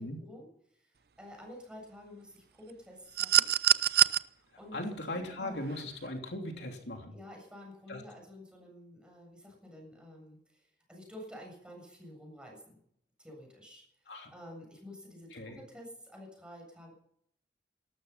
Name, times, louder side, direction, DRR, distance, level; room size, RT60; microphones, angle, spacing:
voice 1, 0.0-3.5 4.6-4.8 5.1-5.7 7.1-12.8 13.2-16.9, left 1 dB, 5° right, 0 dB, 7.5 m, -50 dB
sound 1, 3.2-4.2 5.7-5.8, right 12 dB, 60° right, 0.6 m, -24 dB
voice 2, 4.7-7.1 7.9-8.0 14.1-14.3 15.3-15.6, left 1 dB, 75° left, 2 dB, 3.1 m, -38 dB
18.5 x 13.5 x 5.8 m, 0.69 s
head